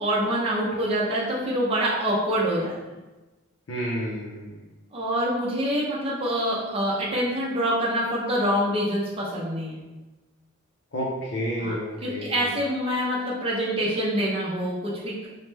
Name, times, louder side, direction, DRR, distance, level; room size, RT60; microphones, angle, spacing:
voice 1, 0.0-2.8 4.9-9.8 11.6-11.7 12.0-15.3, equal, 25° right, -5 dB, 0.5 m, -26 dB
voice 2, 3.7-4.6 10.9-12.4, equal, 65° left, -5 dB, 0.5 m, -30 dB
3.1 x 2.0 x 3.2 m, 1.1 s
head